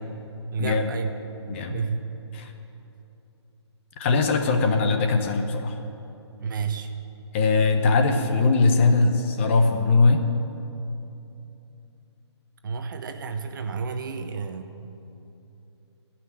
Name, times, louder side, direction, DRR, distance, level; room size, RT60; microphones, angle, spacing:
voice 1, 0.5-1.1 1.7-2.1 6.4-6.9 12.6-14.7, right 5 dB, 45° right, 7 dB, 1.0 m, -30 dB
voice 2, 1.5-1.8 2.3-2.5 4.0-5.7 7.3-10.3, left 3 dB, 25° left, 5 dB, 0.9 m, -21 dB
16.0 x 6.0 x 9.9 m, 2.9 s
hypercardioid pair, 160°, 15 cm